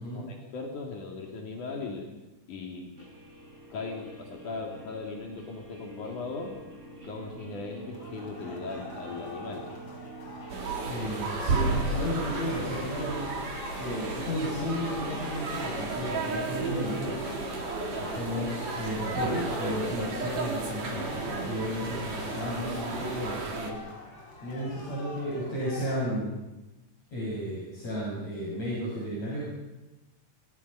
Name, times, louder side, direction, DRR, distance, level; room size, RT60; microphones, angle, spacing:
voice 1, 0.1-2.1 2.5-2.9 3.7-6.5 7.0-9.6, left 4 dB, 75° left, 0 dB, 4.1 m, -38 dB
Guitar, 3.0-10.9, right 3 dB, 20° right, 5.3 m, -46 dB
sound 1, 7.9-26.2, left 3 dB, 35° left, 5.2 m, -46 dB
sound 2, 10.5-23.7, right 3 dB, 85° right, 5.5 m, -33 dB
voice 2, 10.8-13.2 13.8-17.3 18.0-24.1 24.4-26.3 27.1-29.5, equal, 55° left, -5 dB, 8.4 m, -33 dB
29.5 x 23.5 x 5.7 m, 1.0 s
omnidirectional pair, 3.6 m